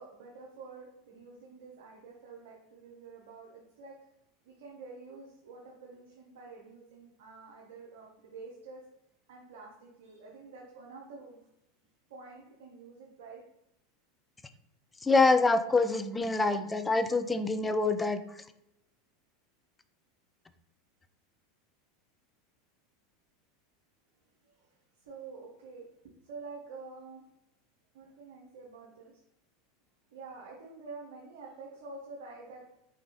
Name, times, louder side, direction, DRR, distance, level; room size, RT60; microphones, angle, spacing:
voice 1, 0.0-4.0 4.4-8.9 9.3-11.4 12.1-13.4 24.6-24.7 25.0-27.2 27.9-29.1 30.1-32.7, right 4 dB, 60° right, -2 dB, 0.8 m, -48 dB
voice 2, 15.0-18.2, left 3 dB, 15° left, 10 dB, 0.4 m, -25 dB
4.8 x 3.5 x 2.9 m, 0.83 s
figure-of-eight pair, 80°, 0 cm